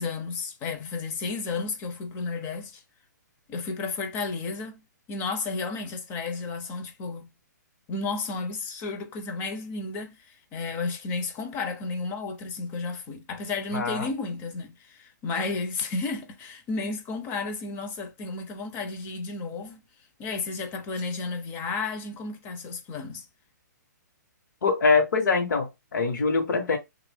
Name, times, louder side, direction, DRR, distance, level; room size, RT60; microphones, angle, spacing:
voice 1, 0.0-2.8 3.5-4.8 5.1-7.3 7.9-19.8 20.2-23.3, left 4 dB, 20° left, 0.5 m, -32 dB
voice 2, 13.7-14.1 24.6-26.8, left 4 dB, 75° left, 1.2 m, -23 dB
3.1 x 2.5 x 3.5 m
hypercardioid pair, 155°, 10 cm